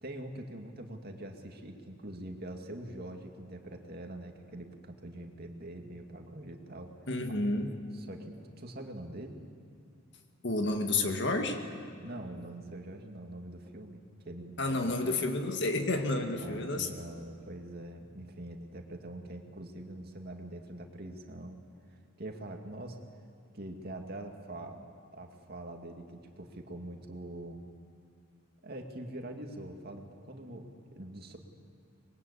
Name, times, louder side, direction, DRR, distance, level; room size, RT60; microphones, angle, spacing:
voice 1, 0.0-6.9 7.3-7.4 7.9-9.4 12.0-15.2 16.4-21.6 21.9-23.0 23.5-27.6 28.6-31.4, right 1 dB, 50° right, 3 dB, 2.3 m, -44 dB
voice 2, 7.1-7.7 10.4-11.6 14.6-16.9, left 2 dB, 55° left, 4 dB, 2.1 m, -30 dB
25.0 x 22.0 x 8.4 m, 2.3 s
head